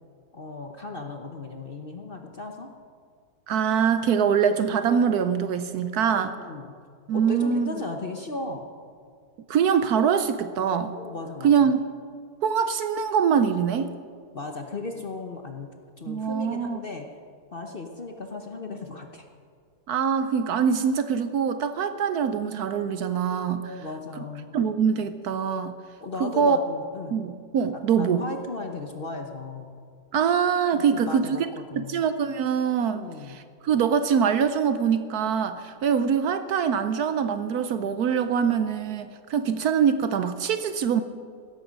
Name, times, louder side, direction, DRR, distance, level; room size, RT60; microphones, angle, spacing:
voice 1, 0.3-2.7 6.1-6.8 7.1-8.7 11.0-11.7 14.3-17.1 17.5-19.3 23.6-24.6 26.0-27.2 27.7-29.8 30.7-32.1 32.9-33.4, left 3 dB, 40° left, 4 dB, 0.9 m, -36 dB
voice 2, 3.5-6.4 7.1-7.7 9.5-10.9 11.4-11.8 12.4-13.9 16.1-16.8 19.9-23.8 24.5-25.8 26.2-26.6 27.1-28.2 30.1-31.5 31.8-41.0, right 7 dB, 65° right, 11 dB, 1.1 m, -24 dB
16.0 x 14.0 x 5.3 m, 2.1 s
omnidirectional pair, 1.9 m